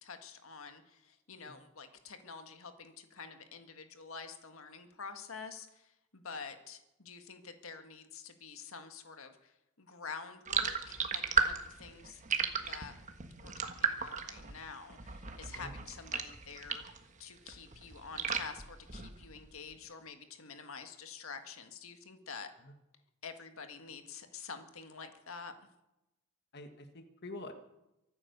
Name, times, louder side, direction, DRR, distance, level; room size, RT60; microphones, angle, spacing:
voice 1, 0.0-12.2 12.6-12.9 13.4-16.8 17.2-22.5 23.2-25.5, left 5 dB, 75° left, 7 dB, 1.7 m, -48 dB
sound 1, 10.5-17.0 17.4-19.4, right 5 dB, 35° right, 1.4 m, -35 dB
voice 2, 26.5-27.5, left 2 dB, 50° left, 6 dB, 1.4 m, -46 dB
24.0 x 8.7 x 6.8 m, 0.92 s
head